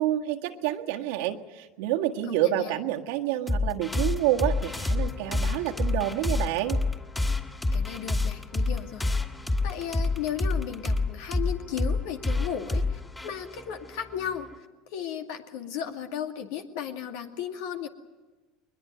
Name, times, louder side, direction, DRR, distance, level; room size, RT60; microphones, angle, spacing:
voice 1, 0.0-6.8, right 13 dB, 75° right, 3 dB, 1.7 m, -28 dB
voice 2, 2.3-2.8 7.7-9.1 9.6-14.5 14.9-17.9, left 9 dB, 70° left, 5 dB, 2.3 m, -35 dB
sound 1, 3.5-14.6, left 2 dB, 15° left, 2.6 m, -28 dB
22.0 x 21.0 x 9.3 m, 1.2 s
hypercardioid pair, 95°, 0 cm